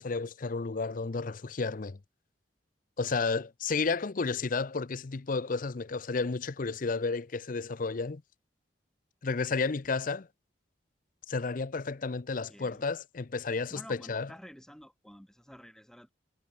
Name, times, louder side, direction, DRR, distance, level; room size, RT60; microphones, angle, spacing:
voice 1, 0.0-2.0 3.0-8.2 9.2-10.3 11.3-14.3, left 4 dB, 45° left, 0.6 m, -32 dB
voice 2, 12.5-12.8 13.7-16.1, equal, 5° left, 2.2 m, -50 dB
head